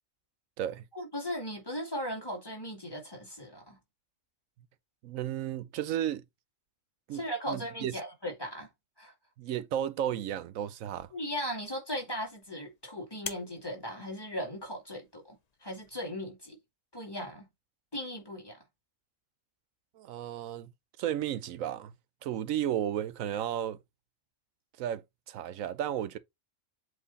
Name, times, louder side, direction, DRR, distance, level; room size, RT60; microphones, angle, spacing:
voice 1, 0.9-3.8 7.1-8.7 9.0-9.1 11.1-15.4 15.6-16.6 16.9-17.5 17.9-18.6, equal, 20° left, 2.3 m, -37 dB
voice 2, 5.0-6.2 7.1-7.2 7.5-7.9 9.4-11.1 20.0-20.7 21.0-21.9 22.2-23.8 24.8-26.2, right 10 dB, 85° right, 1.0 m, -33 dB
sound 1, 10.9-15.9, left 6 dB, 40° left, 0.7 m, -49 dB
7.9 x 3.2 x 4.1 m
omnidirectional pair, 1.4 m